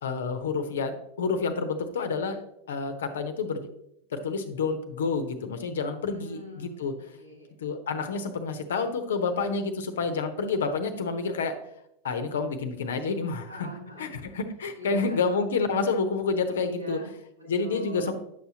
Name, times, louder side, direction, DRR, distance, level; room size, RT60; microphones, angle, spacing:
voice 1, 0.0-3.7 4.1-6.9 7.6-11.6 12.0-13.7 14.0-17.0 17.4-18.1, left 4 dB, 65° left, 8 dB, 0.9 m, -29 dB
voice 2, 6.1-7.5 13.5-14.4 14.7-15.2 16.5-18.1, left 1 dB, 90° right, -2 dB, 3.5 m, -43 dB
9.8 x 6.9 x 2.8 m, 0.78 s
figure-of-eight pair, 90°, 0 cm